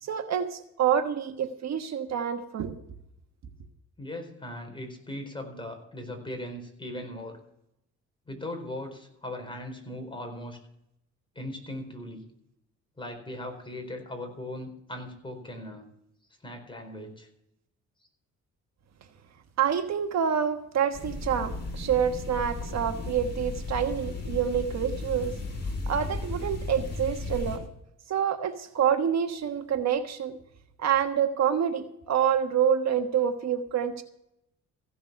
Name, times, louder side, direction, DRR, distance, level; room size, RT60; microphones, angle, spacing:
voice 1, 0.0-2.7 19.6-25.3 25.9-27.6 28.1-30.4 30.8-34.0, right 8 dB, 60° right, 7 dB, 1.3 m, -27 dB
voice 2, 4.0-7.4 8.3-10.6 11.3-12.2 13.0-15.9 16.4-17.3, left 1 dB, 15° left, 4 dB, 4.4 m, -39 dB
sound 1, 20.9-27.6, left 3 dB, 35° left, 4.7 m, -35 dB
16.0 x 7.1 x 6.8 m, 0.77 s
cardioid pair, 90°, 30 cm